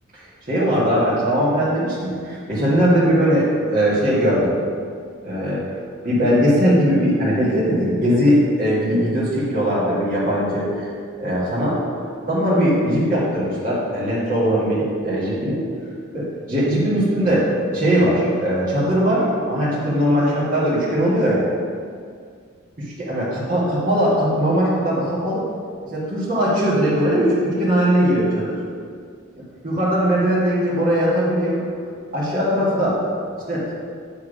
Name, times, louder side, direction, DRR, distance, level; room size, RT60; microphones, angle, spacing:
voice 1, 0.5-4.6 5.2-5.6 6.0-10.9 11.2-11.8 12.2-15.7 16.1-21.4 23.0-25.5 25.8-28.6 29.6-31.6 32.1-33.0 33.5-33.8, equal, 40° right, -9 dB, 1.7 m, -20 dB
8.4 x 3.5 x 4.9 m, 2.1 s
head